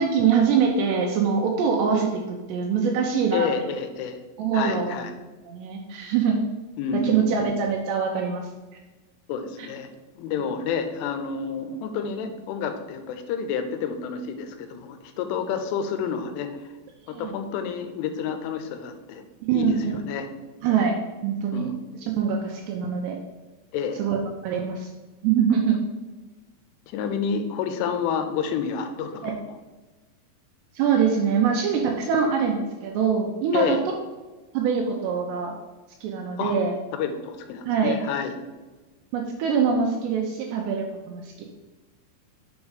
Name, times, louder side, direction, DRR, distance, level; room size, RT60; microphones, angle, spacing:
voice 1, 0.0-3.5 4.4-5.1 5.5-6.4 6.9-8.5 9.6-9.7 17.1-17.4 19.5-20.0 20.6-21.0 21.2-21.7 22.2-23.2 24.0-24.2 24.4-24.9 25.2-25.8 29.2-29.3 30.7-33.8 34.5-35.5 36.0-36.7 37.7-38.1 39.1-41.5, right 6 dB, 80° right, 1 dB, 2.5 m, -24 dB
voice 2, 3.3-4.2 4.5-5.1 6.8-7.6 9.3-9.9 10.2-16.6 17.1-19.2 19.5-20.3 21.5-21.8 23.7-24.0 26.9-29.5 33.5-33.8 36.4-36.5 36.9-38.3, left 6 dB, 90° left, 8 dB, 3.2 m, -29 dB
7.1 x 5.3 x 4.8 m, 1.2 s
omnidirectional pair, 5.5 m